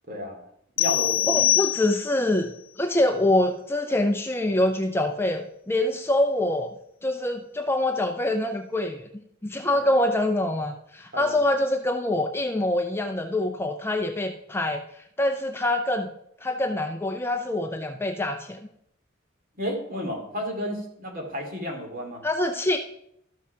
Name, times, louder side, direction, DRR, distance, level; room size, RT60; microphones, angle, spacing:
voice 1, 0.1-0.4 0.8-1.6 9.7-9.8 11.1-11.4 19.6-22.2, equal, 45° right, 2 dB, 2.7 m, -32 dB
sound 1, 0.8-2.3, left 13 dB, 70° left, 0.3 m, -23 dB
voice 2, 1.3-2.5 2.8-6.7 7.0-9.1 9.4-14.8 15.2-16.1 16.4-18.6 22.2-22.8, left 1 dB, 10° left, 5 dB, 0.5 m, -25 dB
13.0 x 6.0 x 5.7 m, 0.73 s
head